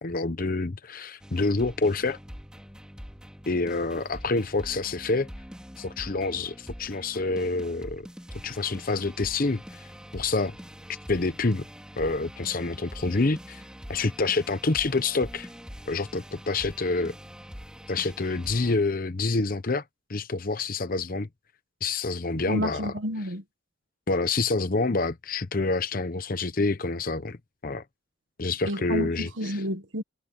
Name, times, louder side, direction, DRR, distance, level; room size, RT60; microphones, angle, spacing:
voice 1, 0.0-2.2 3.5-5.3 5.8-8.1 8.4-9.8 10.1-10.5 11.1-11.7 12.0-13.6 13.9-15.5 15.9-17.2 17.9-19.8 20.1-21.3 21.8-22.9 24.1-27.4 27.6-27.8 28.4-29.3, left 3 dB, 45° left, 0.8 m, -27 dB
sound 1, 1.2-18.8, equal, 5° right, 3.5 m, -44 dB
voice 2, 22.5-23.4 28.7-30.0, equal, 75° right, 1.6 m, -30 dB
head